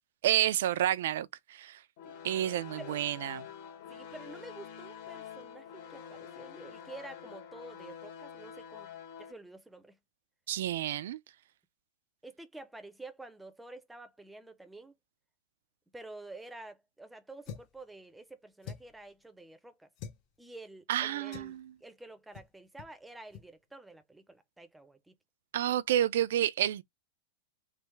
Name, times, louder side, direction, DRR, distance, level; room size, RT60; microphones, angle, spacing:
voice 1, 0.2-1.8 2.2-3.5 10.5-11.2 20.9-21.7 25.5-26.8, right 12 dB, 75° right, 0.4 m, -30 dB
sound 1, 2.0-9.3, left 8 dB, 60° left, 1.2 m, -47 dB
voice 2, 3.9-10.0 12.2-14.9 15.9-19.9 20.4-25.2, right 2 dB, 5° right, 0.5 m, -49 dB
sound 2, 17.4-17.8 18.6-19.0 20.0-20.2 21.3-21.6 22.3-22.5 22.8-22.9 23.3-23.5, left 7 dB, 40° left, 0.6 m, -45 dB
3.4 x 2.0 x 3.1 m
supercardioid pair, 140°, 0 cm